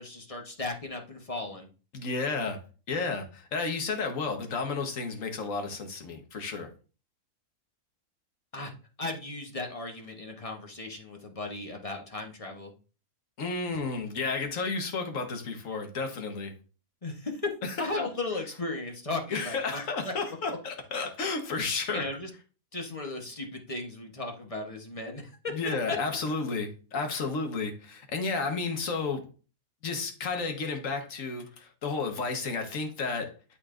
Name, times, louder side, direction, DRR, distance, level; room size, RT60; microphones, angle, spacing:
voice 1, 0.0-1.7 8.5-8.7 9.0-12.7 17.0-17.5 17.8-20.1 21.9-22.3 22.7-25.4 25.6-26.0, left 2 dB, 25° left, 2 dB, 1.0 m, -36 dB
voice 2, 1.9-2.6 2.9-6.7 13.4-16.5 17.6-18.1 19.3-22.1 25.5-29.2 29.8-33.3, left 4 dB, 65° left, 4 dB, 1.6 m, -32 dB
11.5 x 4.2 x 2.5 m, 0.37 s
omnidirectional pair, 1.5 m